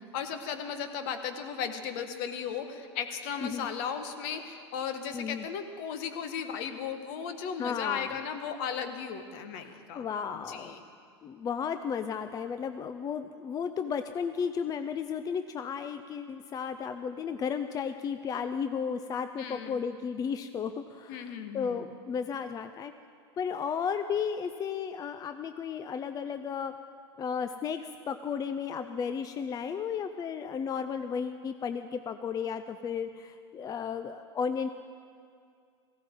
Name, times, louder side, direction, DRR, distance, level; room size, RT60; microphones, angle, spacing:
voice 1, 0.0-10.1 10.3-10.8 19.4-19.8 21.1-21.8, left 7 dB, 55° left, 8 dB, 1.4 m, -36 dB
voice 2, 5.1-5.5 7.6-8.2 9.6-10.7 11.2-22.9 23.4-26.7 27.2-34.7, left 6 dB, 25° left, 10 dB, 0.5 m, -34 dB
17.5 x 15.5 x 3.7 m, 2.2 s
hypercardioid pair, 90°, 14 cm